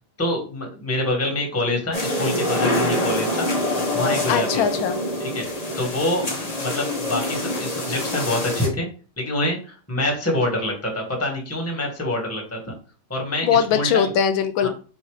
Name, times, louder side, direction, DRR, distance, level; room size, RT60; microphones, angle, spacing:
voice 1, 0.2-3.5 3.9-4.6 5.2-5.4 5.8-8.9 9.2-12.6 13.1-14.1 14.6-14.7, left 1 dB, 10° left, 1 dB, 1.1 m, -26 dB
sound 1, 1.9-8.7, left 1 dB, 30° left, 0.8 m, -25 dB
voice 2, 4.3-5.0 13.4-14.7, left 8 dB, 80° left, 9 dB, 1.4 m, -20 dB
4.1 x 2.6 x 4.8 m, 0.37 s
omnidirectional pair, 2.2 m